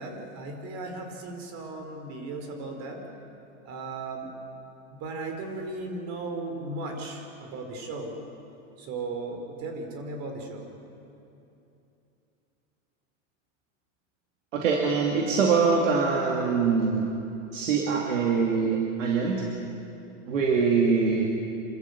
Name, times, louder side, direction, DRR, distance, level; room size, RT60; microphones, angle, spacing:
voice 1, 0.0-3.0 3.6-4.3 4.9-8.1 8.8-10.7 20.3-20.5, right 3 dB, 45° right, 4 dB, 4.3 m, -36 dB
voice 2, 14.5-17.1 17.5-19.4 20.3-21.3, right 5 dB, 85° right, -1 dB, 2.7 m, -23 dB
26.5 x 14.0 x 8.6 m, 2.8 s
supercardioid pair, 125°, 37 cm